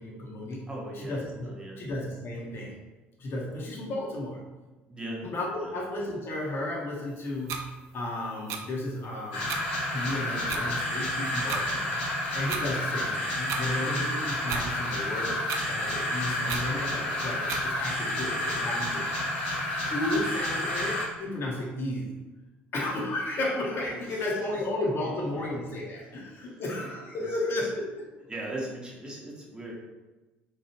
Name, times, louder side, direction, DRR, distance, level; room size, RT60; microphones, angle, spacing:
voice 1, 0.0-0.6 1.0-1.5 1.8-2.8 3.2-4.4 5.2-7.7 7.9-9.5 9.9-12.0 12.3-15.4 15.7-19.4 19.9-22.2 22.7-28.0, left 1 dB, 40° left, -2 dB, 0.7 m, -33 dB
voice 2, 0.7-1.8 4.9-5.3 5.6-5.8 24.1-24.3 25.2-25.5 26.4-26.6 27.3-27.4 28.3-29.7, right 1 dB, 15° right, -3 dB, 0.8 m, -39 dB
sound 1, 7.5-7.6 8.5-8.6 9.5-9.6 10.5-10.6 11.5-11.6 12.5-12.6 13.5-13.6 14.5-14.7 15.5-15.6 16.5-16.6 17.5-17.6, right 6 dB, 50° right, 0.3 m, -33 dB
sound 2, 9.3-21.0, left 1 dB, 70° left, 0.8 m, -30 dB
3.0 x 2.3 x 2.9 m, 1.2 s
figure-of-eight pair, 60°, 6 cm